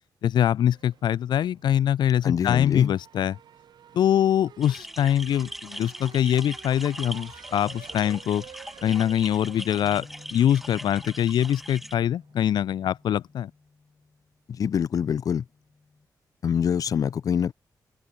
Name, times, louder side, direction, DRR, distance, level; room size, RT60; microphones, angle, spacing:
voice 1, 0.2-3.4 3.9-8.4 8.8-13.5, left 10 dB, 85° left, 0.7 m, -23 dB
sound 1, 0.7-13.3, right 9 dB, 75° right, 3.9 m, -52 dB
voice 2, 2.2-2.9 14.5-15.4 16.4-17.5, left 8 dB, 55° left, 1.0 m, -25 dB
sound 2, 4.6-12.0, equal, 5° right, 4.4 m, -41 dB
Bass guitar, 9.8-16.1, left 4 dB, 25° left, 6.1 m, -53 dB
open air
wide cardioid pair, 165°, 7 cm